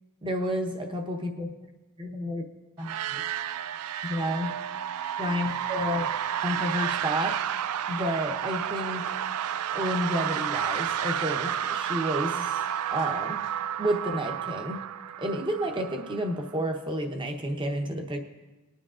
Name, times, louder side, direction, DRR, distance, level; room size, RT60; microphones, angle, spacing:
voice 1, 0.2-1.5 2.0-2.4 2.8-3.2 4.0-4.6 5.2-6.1 6.4-7.4 7.9-9.0 9.7-12.6 12.9-13.4 13.8-14.8 15.2-18.2, equal, 20° right, 4 dB, 0.9 m, -30 dB
sound 1, 2.8-16.5, right 10 dB, 85° right, 0.3 m, -31 dB
20.0 x 9.8 x 2.5 m, 1.2 s
head